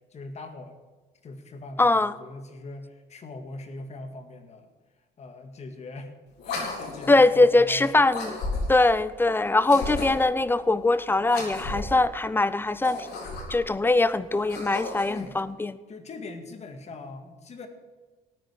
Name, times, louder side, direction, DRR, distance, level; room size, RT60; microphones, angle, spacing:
voice 1, 0.1-0.8 1.2-4.7 5.2-6.1 6.4-8.1 15.1-15.3 15.9-17.7, left 2 dB, 40° left, 7 dB, 2.0 m, -41 dB
voice 2, 1.8-2.1 7.1-8.4 8.7-13.1 13.5-15.8, left 2 dB, 10° left, 16 dB, 0.6 m, -22 dB
sound 1, 6.4-7.2 8.1-8.9 9.6-10.3 11.2-12.0 12.7-13.7 14.3-15.2, left 2 dB, 75° left, 4.2 m, -33 dB
14.0 x 9.2 x 6.5 m, 1.3 s
cardioid pair, 110°, 17 cm